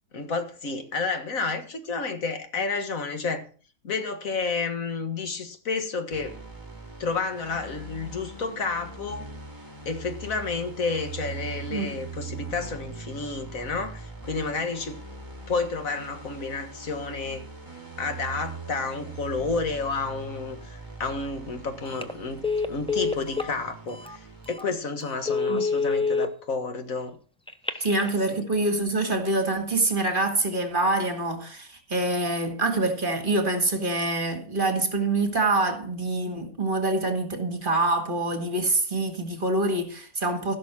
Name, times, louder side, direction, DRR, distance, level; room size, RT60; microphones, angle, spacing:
voice 1, 0.1-3.5 3.8-6.4 7.0-9.3 9.9-15.0 15.5-17.4 18.0-22.4 22.7-27.2 27.8-27.9 28.3-28.5, left 4 dB, 80° left, 2.0 m, -30 dB
sound 1, 6.1-24.5, right 3 dB, 15° right, 2.4 m, -41 dB
Telephone, 21.9-22.1 22.4-23.5 24.0-24.2 24.6-24.7 25.1-26.3 27.5-28.1, left 4 dB, 5° left, 0.6 m, -26 dB
voice 2, 27.8-40.6, right 2 dB, 40° right, 2.0 m, -25 dB
15.5 x 6.2 x 6.0 m
omnidirectional pair, 1.4 m